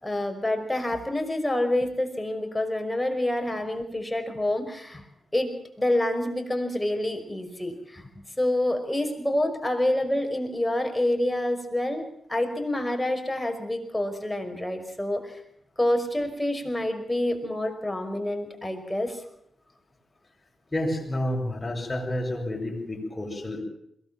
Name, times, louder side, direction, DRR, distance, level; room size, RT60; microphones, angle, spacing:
voice 1, 0.0-5.1 5.3-8.1 8.4-15.3 15.8-19.2, left 1 dB, 10° left, 5 dB, 5.4 m, -27 dB
voice 2, 20.7-23.6, left 1 dB, 30° left, 0 dB, 7.7 m, -30 dB
22.0 x 17.5 x 7.6 m, 0.75 s
supercardioid pair, 40°, 0 cm